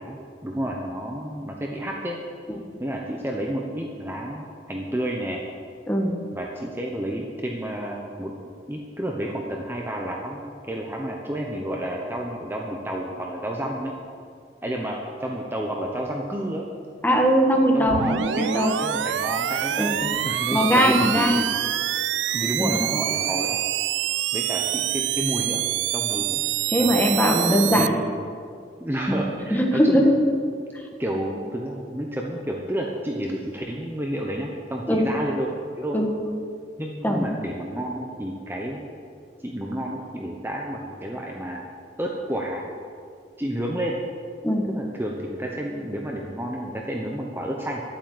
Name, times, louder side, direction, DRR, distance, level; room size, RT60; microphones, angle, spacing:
voice 1, 0.0-2.2 2.8-5.4 6.3-8.3 8.7-14.0 14.6-16.7 17.7-21.5 22.3-23.6 24.3-25.6 25.9-26.4 26.8-27.1 27.7-27.9 28.8-30.1 31.0-36.0 36.8-38.8 39.4-41.7 42.0-42.7 43.4-44.0 44.7-47.8, right 1 dB, 10° right, -1 dB, 0.9 m, -30 dB
voice 2, 17.0-18.1 18.4-18.7 19.8-19.9 20.5-21.4 22.6-22.8 26.7-28.0 29.5-30.1 34.9-35.1 35.9-36.1 37.0-37.3 44.4-44.6, equal, 10° left, 1 dB, 1.4 m, -20 dB
sound 1, 17.9-27.9, right 12 dB, 80° right, 0.3 m, -26 dB
12.0 x 8.7 x 7.8 m, 2.3 s
head